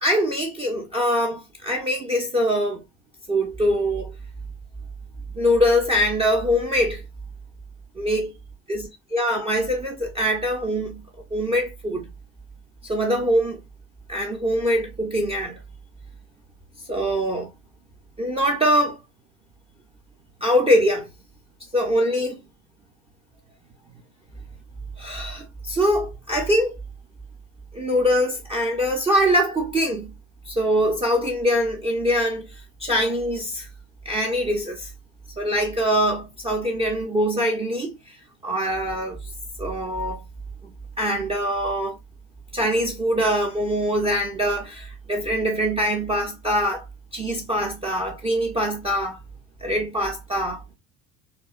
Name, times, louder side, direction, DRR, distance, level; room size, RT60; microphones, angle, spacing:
voice 1, 0.0-2.8 3.3-4.1 5.3-7.0 8.0-8.3 8.7-8.8 9.1-11.0 11.3-12.1 12.8-13.6 14.1-15.6 16.9-17.5 18.2-19.0 20.4-21.1 21.7-22.4 25.0-26.8 27.7-30.1 30.5-32.5 32.8-33.7 34.1-34.9 35.4-38.1 38.4-39.2 39.6-40.2 40.6-42.0 42.5-46.9 47.1-49.2 49.6-50.6, equal, 15° right, 0.3 m, -23 dB
2.8 x 2.1 x 2.3 m
figure-of-eight pair, 60°, 48 cm